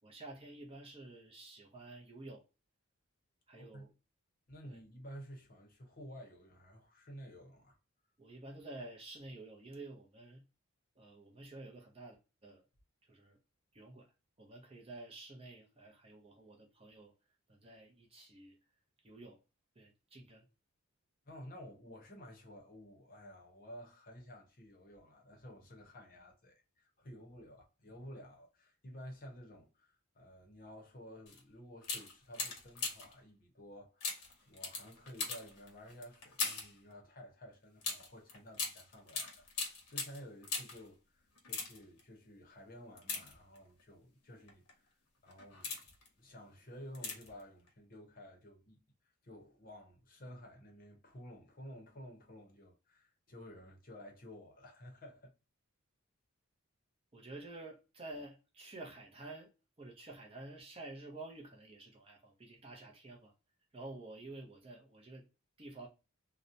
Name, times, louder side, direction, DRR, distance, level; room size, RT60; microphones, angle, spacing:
voice 1, 0.0-2.4 3.5-3.9 4.6-4.8 8.2-10.4 11.0-12.6 13.0-13.4 13.7-14.1 14.4-17.1 17.5-18.6 19.0-19.4 19.8-20.5 57.1-59.5 59.8-63.3 63.7-65.3 65.6-65.9, right 2 dB, 25° right, 0.5 m, -50 dB
voice 2, 3.5-3.9 4.5-7.8 21.3-44.9 45.2-45.7 46.2-55.3, equal, 40° left, 0.7 m, -53 dB
sound 1, 31.3-31.4 31.8-33.2 34.0-36.8 37.8-40.9 41.4-42.0 43.0-43.8 44.5-44.7 45.3-46.1 46.9-47.4 47.7-47.8, left 4 dB, 90° left, 0.9 m, -40 dB
2.8 x 2.1 x 2.4 m
head